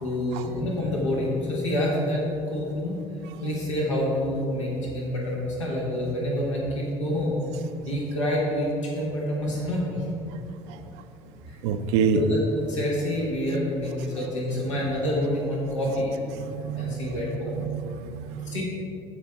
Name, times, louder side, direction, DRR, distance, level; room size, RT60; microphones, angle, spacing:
voice 1, 0.0-3.0 3.4-7.4 7.8-10.1 10.6-10.7 11.5-11.6 12.1-16.1 16.7-17.7 18.4-18.6, left 1 dB, 80° left, -4 dB, 1.6 m, -27 dB
voice 2, 11.6-12.2 16.3-17.0 17.6-18.5, right 8 dB, 65° right, 9 dB, 0.6 m, -27 dB
14.0 x 5.2 x 3.6 m, 2.7 s
figure-of-eight pair, 60°, 16 cm